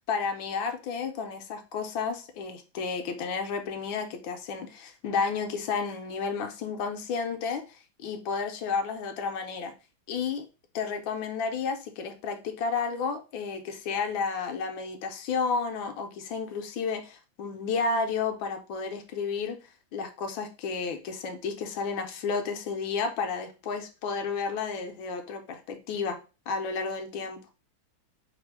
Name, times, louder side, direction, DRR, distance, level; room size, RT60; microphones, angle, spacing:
voice 1, 0.0-9.7 10.1-10.4 10.7-19.6 19.9-26.2 26.5-27.4, left 5 dB, 80° left, 5 dB, 1.4 m, -32 dB
3.4 x 2.4 x 4.5 m, 0.31 s
omnidirectional pair, 2.2 m